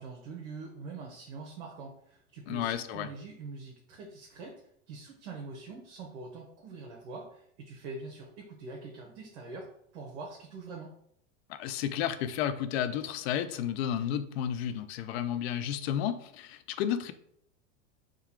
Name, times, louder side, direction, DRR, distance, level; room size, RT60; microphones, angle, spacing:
voice 1, 0.0-4.6 4.9-10.9, right 3 dB, 70° right, 0 dB, 1.0 m, -44 dB
voice 2, 2.5-3.1 11.5-17.1, left 10 dB, 60° left, 12 dB, 0.5 m, -32 dB
3.8 x 2.3 x 4.4 m, 0.68 s
supercardioid pair, 130°, 35 cm